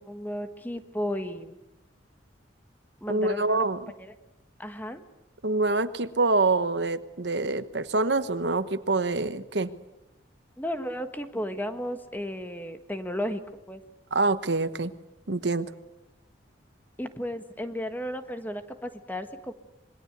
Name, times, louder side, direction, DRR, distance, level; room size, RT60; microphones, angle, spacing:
voice 1, 0.0-1.6 3.0-3.6 4.0-4.1 4.6-5.0 10.6-13.4 13.7-13.8 17.0-19.5, equal, 10° left, 8 dB, 1.5 m, -34 dB
voice 2, 3.1-3.9 5.4-9.7 14.1-14.9 15.3-15.7, right 3 dB, 65° right, 12 dB, 1.2 m, -26 dB
26.5 x 22.0 x 8.2 m, 0.92 s
head